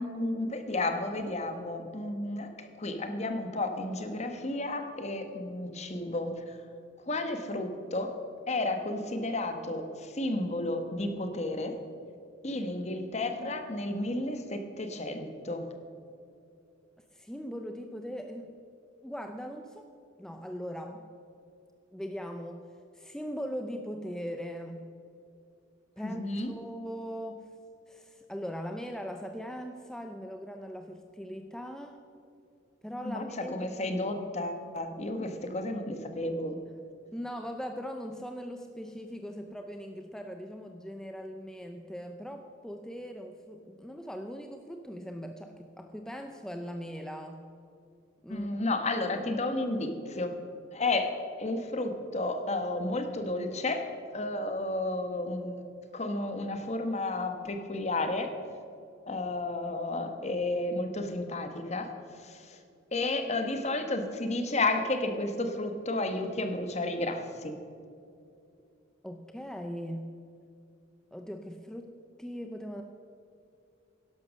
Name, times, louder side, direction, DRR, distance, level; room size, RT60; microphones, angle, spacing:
voice 1, 0.0-6.6 7.1-8.1 8.5-11.7 12.4-15.7 26.0-26.5 33.0-33.2 33.5-36.6 48.3-50.3 50.7-51.1 51.4-53.9 54.1-55.6 55.9-58.3 59.1-61.9 62.2-62.6 62.9-67.6, left 2 dB, 35° left, 6 dB, 1.2 m, -32 dB
voice 2, 17.1-18.6 19.0-19.9 20.2-21.1 21.9-24.9 26.0-26.2 26.5-27.5 27.9-32.0 32.8-33.7 35.2-35.3 37.1-47.5 48.2-48.5 69.0-70.1 71.1-72.8, equal, 5° left, 5 dB, 0.5 m, -40 dB
11.5 x 11.5 x 6.3 m, 2.5 s
head